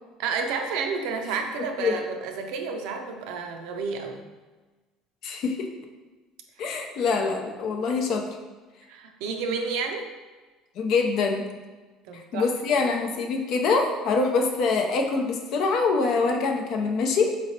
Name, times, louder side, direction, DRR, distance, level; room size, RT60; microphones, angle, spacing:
voice 1, 0.2-4.2 8.9-10.0 12.0-12.9, right 5 dB, 80° right, 5 dB, 0.5 m, -31 dB
voice 2, 5.2-5.6 6.6-8.2 10.8-11.4 12.1-17.2, left 4 dB, 60° left, 3 dB, 0.6 m, -24 dB
4.2 x 3.1 x 2.7 m, 1.3 s
supercardioid pair, 105°, 0 cm